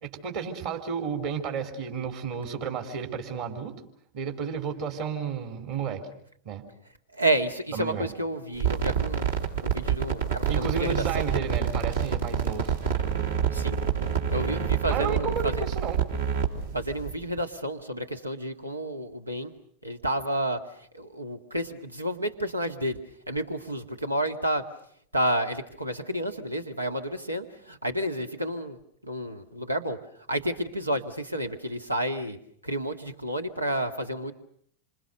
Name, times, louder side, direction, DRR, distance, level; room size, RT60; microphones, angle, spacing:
voice 1, 0.0-3.7 4.1-6.1 6.4-6.6 7.7-8.1 10.5-12.8 14.9-16.1, right 6 dB, 50° right, 5 dB, 4.0 m, -32 dB
voice 2, 7.1-11.3 13.5-13.8 14.3-15.5 16.7-19.5 19.8-20.6 20.9-23.0 23.3-24.7 25.1-28.8 29.0-30.0 30.3-32.4 32.6-34.3, right 1 dB, 85° right, 8 dB, 1.9 m, -30 dB
sound 1, 8.5-17.1, right 8 dB, 65° right, 3.6 m, -27 dB
28.0 x 27.0 x 6.6 m, 0.64 s
figure-of-eight pair, 90°, 0 cm